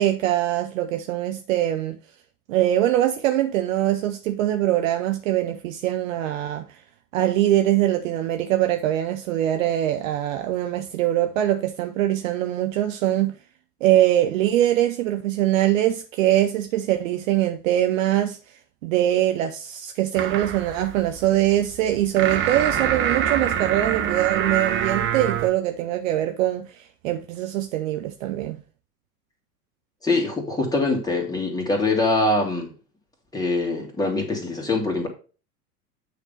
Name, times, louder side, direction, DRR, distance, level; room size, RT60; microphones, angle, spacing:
voice 1, 0.0-2.0 2.5-6.8 7.1-13.3 13.8-18.4 18.8-28.6, right 13 dB, 55° right, 0.8 m, -23 dB
sound 1, 20.1-25.5, right 9 dB, 25° right, 0.8 m, -26 dB
voice 2, 30.0-32.7 33.3-35.1, left 2 dB, 10° left, 2.2 m, -23 dB
8.4 x 3.4 x 5.5 m
figure-of-eight pair, 85°, 47 cm